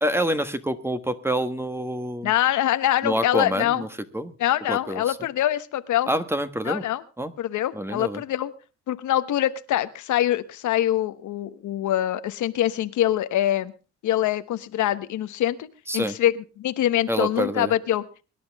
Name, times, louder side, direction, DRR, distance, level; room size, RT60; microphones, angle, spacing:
voice 1, 0.0-2.3 3.0-3.9 4.1-4.3 4.7-5.2 6.1-6.8 7.2-7.3 7.7-8.2 15.9-16.1 17.1-17.7, right 1 dB, 10° right, 11 dB, 1.4 m, -27 dB
voice 2, 2.2-3.8 4.4-6.1 6.6-7.0 7.4-8.5 8.9-13.7 14.0-15.7 15.9-18.0, left 12 dB, 90° left, 12 dB, 1.1 m, -24 dB
23.5 x 11.5 x 3.5 m, 0.34 s
cardioid pair, 110°, 29 cm